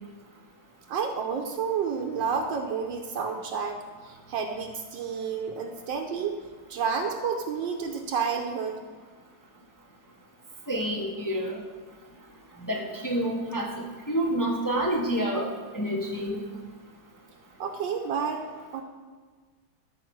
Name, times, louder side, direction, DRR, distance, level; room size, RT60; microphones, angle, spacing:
voice 1, 0.9-6.4 6.7-8.8 17.6-18.4 18.7-18.8, right 6 dB, 75° right, 3 dB, 1.4 m, -30 dB
voice 2, 10.7-11.6 12.7-16.4, right 1 dB, 25° left, -1 dB, 0.4 m, -28 dB
12.5 x 5.6 x 4.7 m, 1.5 s
omnidirectional pair, 2.1 m